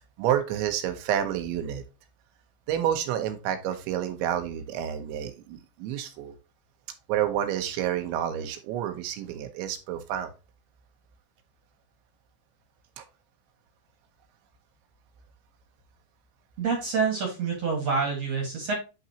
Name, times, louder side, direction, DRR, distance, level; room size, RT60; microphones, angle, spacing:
voice 1, 0.2-1.8 2.7-6.4 7.1-10.3 13.0-13.1, right 10 dB, 80° right, 7 dB, 3.2 m, -29 dB
voice 2, 16.6-18.7, right 5 dB, 50° right, 1 dB, 2.1 m, -27 dB
11.0 x 3.9 x 2.9 m, 0.28 s
omnidirectional pair, 5.3 m